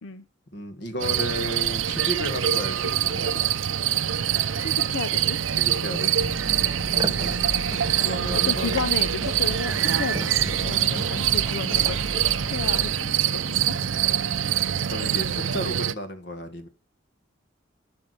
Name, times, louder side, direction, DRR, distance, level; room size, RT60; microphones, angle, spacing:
voice 1, 0.5-3.5 5.5-6.1 6.8-7.4 8.0-8.8 10.6-11.2 14.9-16.7, equal, 60° left, 1.9 m, -34 dB
sound 1, 1.0-15.9, right 10 dB, 90° right, 0.6 m, -24 dB
voice 2, 4.6-5.4 7.2-7.4 8.5-10.3 10.6-12.1 12.5-13.7, left 5 dB, 85° left, 0.7 m, -33 dB
sound 2, 6.2-12.9, equal, 5° right, 0.6 m, -36 dB
sound 3, 7.0-13.2, right 2 dB, 20° right, 1.3 m, -40 dB
10.5 x 6.3 x 6.7 m
head